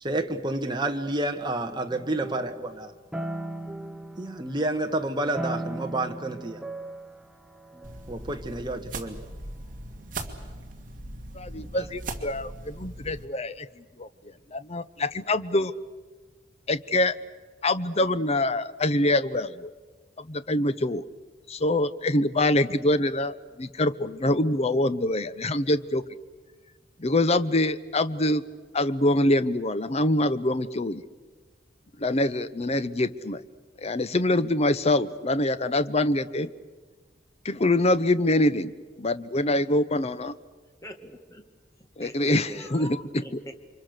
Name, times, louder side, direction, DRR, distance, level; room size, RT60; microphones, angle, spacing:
voice 1, 0.0-2.9 4.2-6.6 8.1-9.2 11.7-11.8, right 2 dB, 25° right, 5 dB, 1.5 m, -29 dB
sound 1, 1.9-4.9 5.3-9.2, right 1 dB, 5° right, 0.8 m, -38 dB
sound 2, 7.8-13.3, right 2 dB, 45° right, 2.4 m, -39 dB
voice 2, 11.3-13.7 14.0-14.1 14.5-15.7 16.7-17.1 17.6-19.7 20.2-21.0 21.5-26.0 27.0-28.4 28.7-31.0 32.0-33.4 33.8-36.5 37.4-38.7 39.0-40.3 42.0-43.0, left 1 dB, 35° left, 13 dB, 0.8 m, -25 dB
voice 3, 40.8-41.4 42.0-43.5, equal, 15° left, 5 dB, 2.1 m, -42 dB
29.5 x 24.5 x 6.7 m, 1.4 s
head